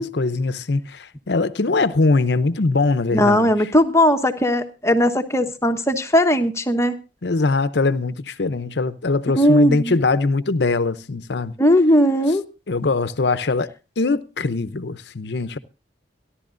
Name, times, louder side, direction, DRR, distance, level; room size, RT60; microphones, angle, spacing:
voice 1, 0.0-3.5 7.2-11.5 12.7-13.7 14.0-15.6, left 3 dB, 65° left, 0.7 m, -22 dB
voice 2, 3.1-7.0 9.4-10.0 11.6-12.4, equal, 15° left, 1.0 m, -18 dB
27.5 x 11.5 x 2.5 m
head